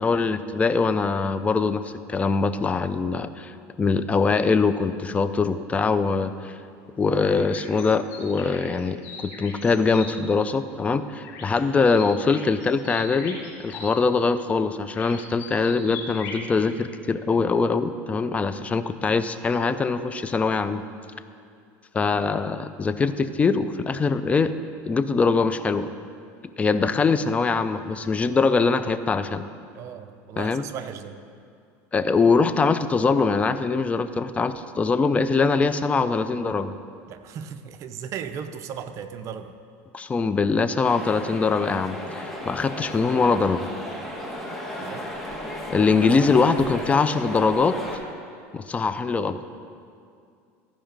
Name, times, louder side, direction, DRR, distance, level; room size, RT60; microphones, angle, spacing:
voice 1, 0.0-1.8 2.1-6.6 7.0-20.8 21.9-24.5 24.9-25.9 26.6-29.5 30.4-30.7 31.9-36.8 39.9-43.7 45.7-47.8 48.5-49.4, left 4 dB, 20° left, 11 dB, 0.4 m, -23 dB
sound 1, 7.2-10.1 11.2-11.6 11.8-13.9 14.9-16.4, left 4 dB, 75° left, 2.6 m, -40 dB
voice 2, 29.7-31.2 37.1-39.6 44.8-45.1, right 8 dB, 45° right, 9 dB, 0.6 m, -36 dB
sound 2, 40.8-48.0, equal, 5° left, 1.4 m, -34 dB
14.0 x 5.0 x 5.2 m, 2.3 s
supercardioid pair, 120°, 7 cm